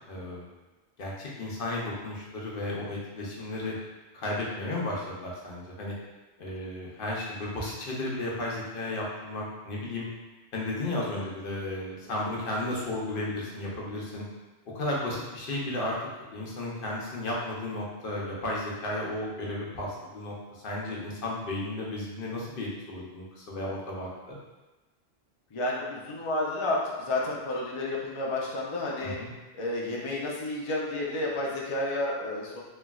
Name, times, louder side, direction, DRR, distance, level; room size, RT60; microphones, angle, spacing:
voice 1, 0.1-0.5 1.0-3.8 4.1-5.9 6.4-10.1 10.5-14.2 14.7-15.9 16.3-24.4 29.0-29.3, left 1 dB, 60° left, -4 dB, 0.8 m, -34 dB
voice 2, 25.5-29.2 29.6-32.6, left 2 dB, 45° left, -4 dB, 0.4 m, -31 dB
3.1 x 2.5 x 2.3 m, 1.1 s
omnidirectional pair, 1.1 m